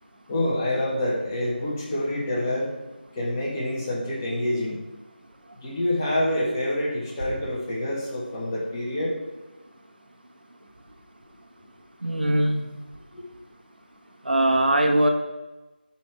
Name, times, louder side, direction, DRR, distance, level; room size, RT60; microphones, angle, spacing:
voice 1, 0.3-2.7 3.1-4.8 5.6-9.1 13.1-13.2, left 1 dB, 15° left, -6 dB, 1.3 m, -27 dB
voice 2, 12.0-12.6 14.2-15.1, right 1 dB, 65° right, 3 dB, 1.7 m, -21 dB
8.2 x 7.1 x 4.7 m, 1.1 s
figure-of-eight pair, 170°, 6 cm